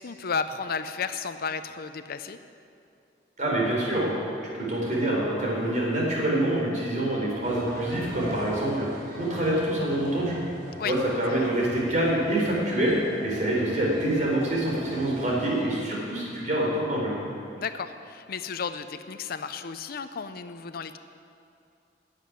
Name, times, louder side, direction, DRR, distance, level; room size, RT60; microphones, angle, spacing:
voice 1, 0.0-2.4 10.8-10.9 11.3-11.5 17.6-21.0, left 5 dB, 55° left, 10 dB, 0.5 m, -33 dB
voice 2, 3.4-4.1 4.4-8.9 9.2-10.4 10.8-13.0 13.2-17.2, right 1 dB, 45° right, -3 dB, 4.0 m, -26 dB
sound 1, 7.4-15.6, right 1 dB, 60° right, 3.8 m, -40 dB
11.5 x 7.7 x 9.7 m, 2.5 s
head